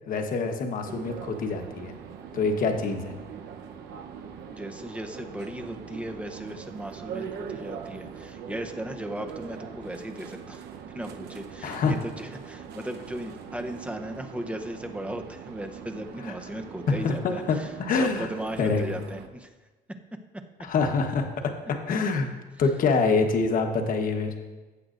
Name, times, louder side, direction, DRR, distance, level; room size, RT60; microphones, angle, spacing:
voice 1, 0.1-1.9 2.3-3.1 11.6-11.9 17.0-18.3 18.6-18.8 20.6-22.3 22.6-24.3, left 4 dB, 55° left, 5 dB, 1.2 m, -25 dB
sound 1, 0.8-19.3, right 7 dB, 75° right, 0.9 m, -42 dB
voice 2, 4.5-10.6 10.9-19.5, right 1 dB, 5° right, 5 dB, 0.8 m, -37 dB
15.0 x 7.7 x 2.6 m, 1.2 s
cardioid pair, 110°, 17 cm